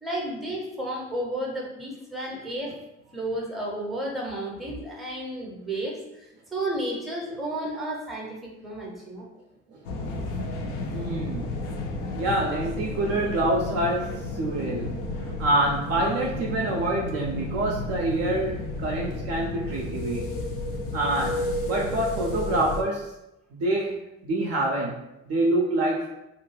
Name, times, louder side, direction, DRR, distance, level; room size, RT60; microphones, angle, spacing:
voice 1, 0.0-2.7 3.1-9.3, right 1 dB, ahead, -2 dB, 0.6 m, -32 dB
voice 2, 9.7-10.1 10.9-11.5 12.2-15.0 15.2-20.3 20.9-23.1 23.5-26.1, right 1 dB, 40° right, -1 dB, 0.4 m, -26 dB
sound 1, 9.8-22.8, left 2 dB, 60° left, 0.5 m, -32 dB
2.4 x 2.1 x 3.1 m, 0.89 s
figure-of-eight pair, 50°, 39 cm